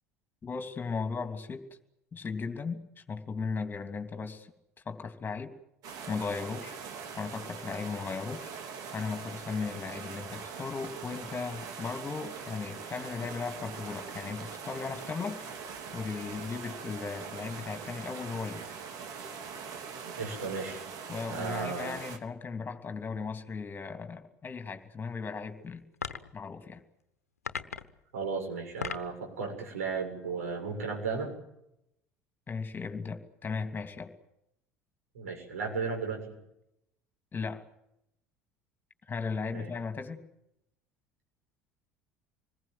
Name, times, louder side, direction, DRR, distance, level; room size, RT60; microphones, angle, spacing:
voice 1, 0.4-1.6 2.1-4.5 4.8-5.5 6.1-6.8 7.2-8.5 8.9-15.4 15.9-18.6 21.1-25.8 26.3-26.8 32.5-34.1 37.3-37.6 39.1-40.2, left 5 dB, 25° left, 6 dB, 3.0 m, -36 dB
sound 1, 5.8-22.2, right 6 dB, 50° right, 3.4 m, -42 dB
voice 2, 20.0-20.8 21.3-21.9 28.1-31.3 35.1-36.2 39.5-39.7, right 5 dB, 75° right, 2 dB, 7.2 m, -35 dB
sound 2, 25.9-26.4 27.4-28.0 28.6-29.2, left 6 dB, 80° left, 1.0 m, -37 dB
26.5 x 21.0 x 7.8 m, 0.81 s
figure-of-eight pair, 65°, 8 cm